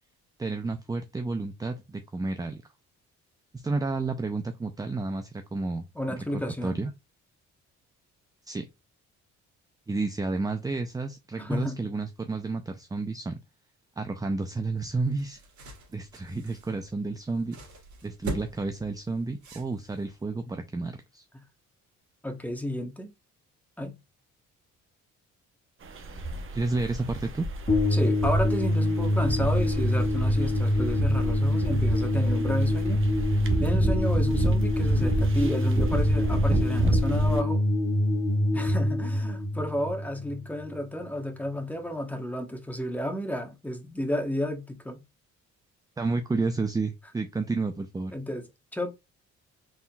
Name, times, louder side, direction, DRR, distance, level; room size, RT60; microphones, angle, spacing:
voice 1, 0.4-2.6 3.5-6.9 8.5-8.7 9.9-13.4 14.0-15.4 15.9-17.6 18.0-21.2 26.1-27.5 46.0-48.1, right 3 dB, 10° right, 0.5 m, -31 dB
voice 2, 5.9-6.8 11.4-11.8 21.3-21.4 22.2-23.1 23.8-23.9 27.9-33.0 33.6-37.6 38.5-45.0 48.1-48.5 48.7-48.9, equal, 5° left, 1.1 m, -32 dB
sound 1, 14.8-20.2, right 1 dB, 70° right, 1.9 m, -42 dB
sound 2, 25.8-37.4, right 2 dB, 45° right, 0.9 m, -31 dB
sound 3, 27.7-40.8, left 1 dB, 25° left, 1.8 m, -25 dB
4.2 x 3.7 x 2.3 m
cardioid pair, 90°, 30 cm